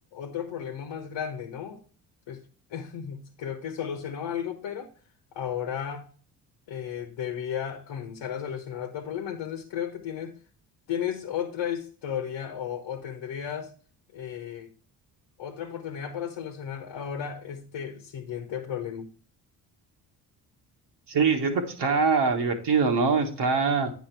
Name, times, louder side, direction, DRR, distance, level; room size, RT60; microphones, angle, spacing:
voice 1, 0.1-1.8 2.3-2.4 2.7-4.9 5.3-6.1 6.7-10.4 10.9-13.7 14.1-14.7 15.4-19.1, left 8 dB, 60° left, 1.2 m, -34 dB
voice 2, 21.1-23.9, right 5 dB, 55° right, 1.6 m, -23 dB
9.2 x 5.1 x 4.6 m
hypercardioid pair, 50°, 48 cm